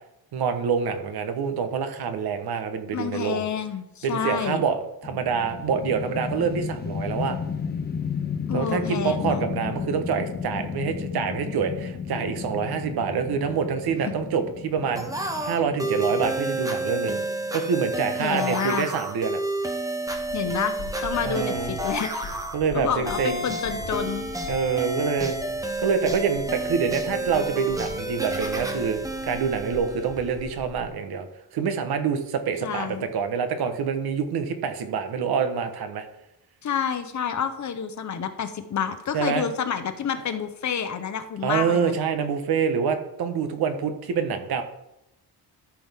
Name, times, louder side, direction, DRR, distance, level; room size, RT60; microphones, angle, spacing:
voice 1, 0.3-3.4 4.0-7.4 8.5-15.1 15.4-17.2 17.5-19.4 21.2-21.7 22.5-23.4 24.5-25.4 25.8-31.3 31.5-36.0 39.1-39.4 41.4-44.6, right 6 dB, 75° right, 8 dB, 1.2 m, -26 dB
voice 2, 2.9-4.6 8.5-9.4 18.2-18.9 20.3-20.7 21.0-22.1 22.7-24.3 32.6-33.1 36.6-42.0, left 7 dB, 50° left, 9 dB, 0.9 m, -29 dB
sound 1, 5.0-17.2, left 6 dB, 25° left, 0.5 m, -33 dB
sound 2, 15.0-30.4, right 1 dB, 10° right, 0.8 m, -30 dB
sound 3, 20.1-30.9, left 3 dB, 85° left, 2.5 m, -42 dB
13.0 x 6.0 x 3.5 m, 0.87 s
wide cardioid pair, 165°, 38 cm